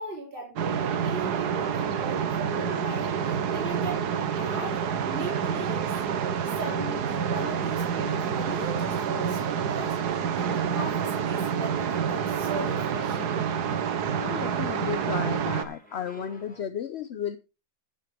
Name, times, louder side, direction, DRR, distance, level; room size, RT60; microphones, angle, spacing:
voice 1, 0.0-5.9 6.6-10.0 10.3-13.4, right 2 dB, 30° right, 3.6 m, -38 dB
sound 1, 0.6-15.6, right 7 dB, 75° right, 1.6 m, -28 dB
sound 2, 2.5-3.8 4.3-6.1 6.4-7.7 8.0-9.4 9.9-11.5 11.8-13.5 14.0-16.6, left 3 dB, 5° left, 4.8 m, -52 dB
voice 2, 14.1-17.4, left 9 dB, 55° left, 0.7 m, -33 dB
14.5 x 8.3 x 3.4 m
omnidirectional pair, 1.8 m